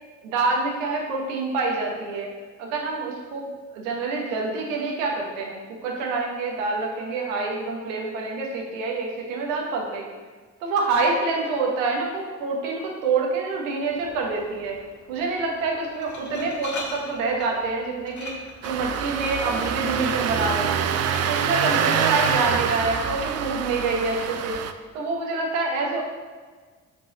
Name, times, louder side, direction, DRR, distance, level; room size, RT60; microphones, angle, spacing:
voice 1, 0.2-2.3 2.6-3.5 3.7-10.1 10.6-14.8 15.1-18.3 18.6-20.8 21.3-24.6 24.9-26.0, right 3 dB, 80° right, 0 dB, 1.2 m, -26 dB
Glass, 13.8-21.6, left 3 dB, 50° left, 1.4 m, -42 dB
Engine starting, 18.6-24.7, right 8 dB, 40° right, 0.5 m, -25 dB
5.9 x 4.0 x 4.9 m, 1.5 s
hypercardioid pair, 50°, 39 cm